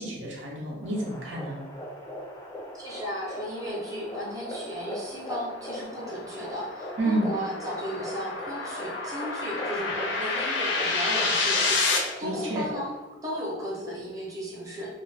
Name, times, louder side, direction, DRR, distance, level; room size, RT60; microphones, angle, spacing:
voice 1, 0.0-1.6 7.0-7.3 12.2-12.6, right 1 dB, 80° right, -2 dB, 0.7 m, -29 dB
sound 1, 0.8-13.0, equal, 15° left, 0.4 m, -40 dB
voice 2, 2.8-12.9 13.2-14.9, equal, 20° right, -5 dB, 0.7 m, -35 dB
sound 2, 5.1-12.0, left 3 dB, 70° left, 0.5 m, -29 dB
2.5 x 2.4 x 3.2 m, 1.1 s
head